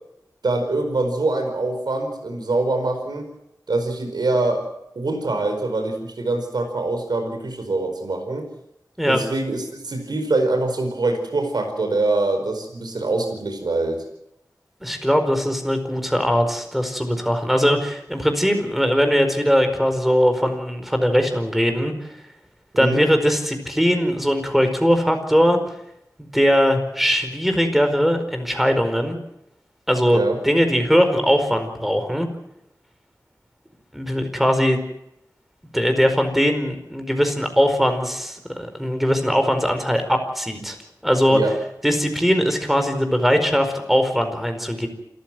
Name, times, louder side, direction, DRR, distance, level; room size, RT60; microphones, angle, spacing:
voice 1, 0.4-3.3 3.7-4.6 4.9-8.5 9.1-14.0 22.7-23.0 30.1-30.4 41.3-41.5, right 2 dB, 85° right, 5 dB, 4.8 m, -24 dB
voice 2, 14.8-21.9 22.8-25.6 26.2-29.2 29.9-32.3 33.9-34.8 35.7-40.8 41.0-41.4 41.8-44.9, equal, 5° right, 7 dB, 4.8 m, -20 dB
28.0 x 14.5 x 7.7 m, 0.82 s
wide cardioid pair, 65°, 7 cm